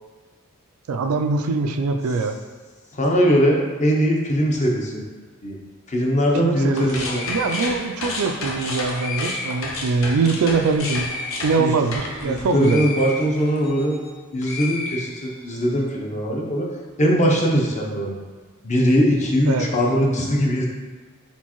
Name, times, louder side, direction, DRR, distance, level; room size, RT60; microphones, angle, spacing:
voice 1, 0.9-2.3 6.3-11.1 11.4-12.9 19.5-19.7, right 4 dB, 65° right, 6 dB, 0.4 m, -23 dB
voice 2, 2.9-5.0 5.4-5.6 5.9-7.2 11.6-11.7 12.2-14.0 14.3-16.7 17.0-18.2 18.6-20.7, equal, 30° left, -1 dB, 0.7 m, -20 dB
sound 1, 6.7-14.1 14.4-15.6, left 2 dB, 60° left, 0.8 m, -31 dB
4.4 x 4.0 x 3.0 m, 1.4 s
head